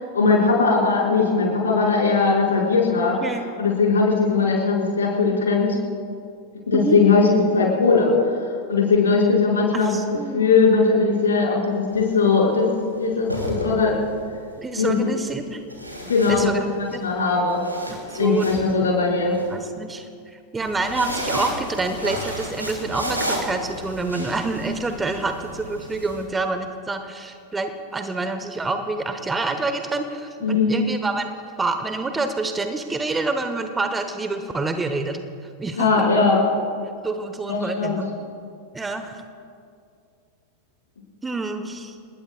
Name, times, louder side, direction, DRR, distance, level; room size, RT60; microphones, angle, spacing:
voice 1, 0.1-3.2 3.6-5.8 6.7-9.9 10.3-12.7 13.0-14.0 14.8-15.1 16.1-16.5 16.8-17.6 18.2-19.3 30.4-30.7 35.8-36.4 37.5-38.0, left 4 dB, 70° left, -3 dB, 5.3 m, -19 dB
voice 2, 3.2-3.6 6.7-7.0 9.7-10.6 14.6-15.6 16.3-16.6 16.9-17.0 17.9-18.5 18.8-18.9 19.5-31.3 31.6-35.2 35.6-36.2 37.0-38.1 38.7-39.2 41.2-42.0, right 3 dB, 15° right, 8 dB, 1.0 m, -27 dB
sound 1, 11.9-12.1 13.1-14.2 15.7-16.9 17.3-19.4 20.5-26.2, equal, 85° right, 2.9 m, -32 dB
28.5 x 20.0 x 2.3 m, 2.4 s
figure-of-eight pair, 90°, 0 cm